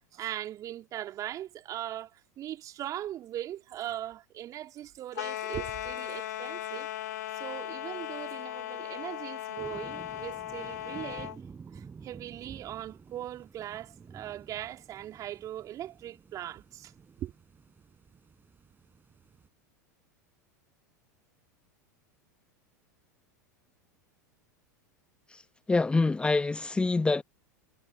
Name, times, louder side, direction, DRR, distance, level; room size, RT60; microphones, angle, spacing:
voice 1, 0.1-6.9 7.3-11.3 11.7-16.9 17.2-17.3, right 12 dB, 35° right, 3.3 m, -40 dB
sound 1, 5.1-11.4, left 12 dB, 65° left, 2.1 m, -37 dB
sound 2, 9.6-19.5, right 6 dB, 20° right, 7.7 m, -51 dB
voice 2, 25.7-27.2, left 3 dB, 10° left, 1.1 m, -26 dB
figure-of-eight pair, 85°, 10 cm